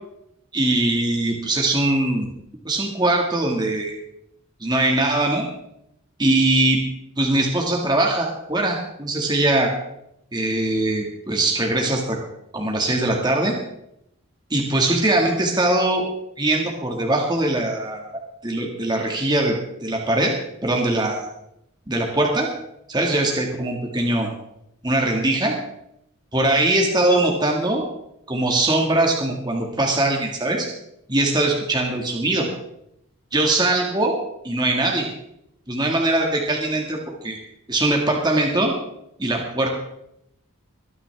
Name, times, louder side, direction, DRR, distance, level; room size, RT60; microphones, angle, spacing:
voice 1, 0.5-2.3 2.6-3.9 4.6-5.5 6.2-6.8 7.2-9.7 10.3-12.2 12.5-13.6 14.5-16.1 16.4-18.0 18.4-20.3 20.6-21.3 21.9-22.5 22.9-24.3 24.8-25.5 26.3-27.9 28.3-30.7 31.1-32.5 33.3-34.2 34.4-35.1 35.7-37.4 37.7-38.7 39.2-39.7, right 2 dB, 20° right, 0 dB, 1.9 m, -21 dB
23.0 x 10.0 x 3.5 m, 0.79 s
head